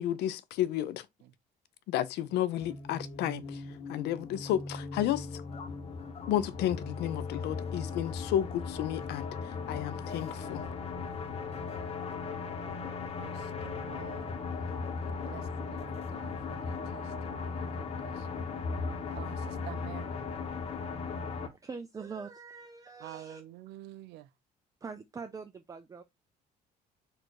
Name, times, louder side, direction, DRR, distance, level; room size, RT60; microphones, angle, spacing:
voice 1, 0.0-1.1 1.9-3.6 3.9-5.4 6.3-10.7, left 12 dB, 80° left, 0.5 m, -32 dB
sound 1, 2.5-21.5, left 4 dB, 35° left, 1.0 m, -37 dB
voice 2, 12.2-14.8 15.1-18.5 19.2-20.2 23.0-24.3, right 15 dB, 80° right, 0.4 m, -50 dB
voice 3, 21.4-23.4 24.8-26.0, right 5 dB, 20° right, 0.5 m, -43 dB
4.3 x 2.5 x 4.6 m
cardioid pair, 110°, 17 cm